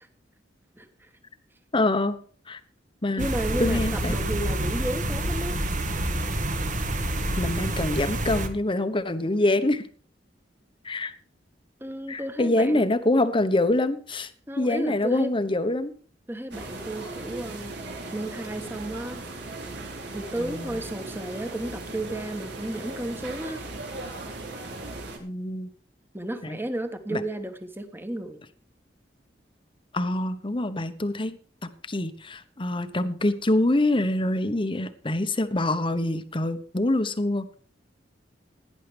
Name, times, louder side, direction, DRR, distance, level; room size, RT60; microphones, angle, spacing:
voice 1, 1.7-2.2 2.5-2.6 3.0-3.3 3.6-4.1 7.4-9.8 10.8-11.1 12.1-14.3 14.6-15.9 20.4-20.8 25.2-25.7 26.4-26.6 27.1-27.2 29.9-37.5, left 1 dB, 30° left, 11 dB, 1.1 m, -25 dB
voice 2, 3.2-5.6 11.8-12.9 14.5-15.3 16.3-17.8 18.1-19.2 20.1-23.6 26.1-28.4, right 1 dB, 10° right, 8 dB, 1.5 m, -33 dB
sound 1, 3.2-8.5, right 1 dB, 45° right, 1.7 m, -28 dB
sound 2, 16.5-25.2, right 2 dB, 65° right, 3.9 m, -38 dB
17.5 x 10.5 x 3.4 m, 0.43 s
head